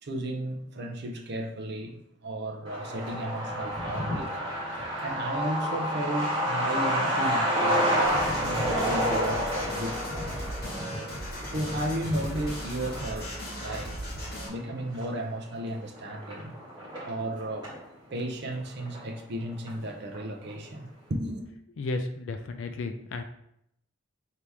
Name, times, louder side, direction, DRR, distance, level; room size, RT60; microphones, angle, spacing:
voice 1, 0.0-4.3 5.0-10.5 11.4-14.0 14.5-16.5 17.0-17.7 18.1-21.5, right 1 dB, 55° right, 0.6 m, -34 dB
Truck, 2.6-17.8 18.2-18.3 18.5-19.4 19.7-19.8 20.1-20.5, equal, 20° right, 1.3 m, -30 dB
sound 1, 8.0-14.5, equal, 50° left, 1.8 m, -38 dB
voice 2, 21.8-23.2, left 3 dB, 70° left, 0.4 m, -33 dB
3.5 x 2.8 x 4.7 m
head